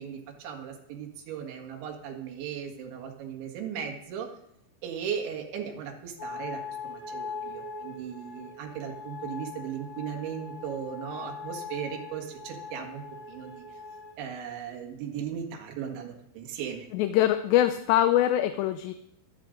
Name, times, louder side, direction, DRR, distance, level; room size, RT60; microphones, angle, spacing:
voice 1, 0.0-4.3 4.8-13.8 14.2-16.9, right 8 dB, 80° right, 1 dB, 4.1 m, -37 dB
sound 1, 6.2-14.1, left 4 dB, 30° left, 5.8 m, -41 dB
voice 2, 16.9-18.9, left 12 dB, 80° left, 9 dB, 2.7 m, -23 dB
17.5 x 12.5 x 3.9 m, 0.78 s
omnidirectional pair, 5.3 m